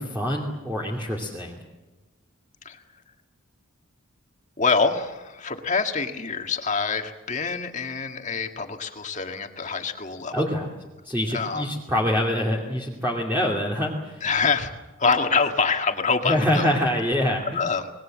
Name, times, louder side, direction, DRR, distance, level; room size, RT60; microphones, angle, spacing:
voice 1, 0.0-1.6 10.3-10.7 11.0-14.2 16.2-17.6, left 1 dB, 10° right, -3 dB, 2.6 m, -25 dB
voice 2, 4.6-10.5 11.3-11.7 14.2-14.7 15.0-16.7 17.5-17.9, left 4 dB, 35° left, 5 dB, 1.9 m, -25 dB
26.0 x 20.5 x 7.6 m, 1.1 s
head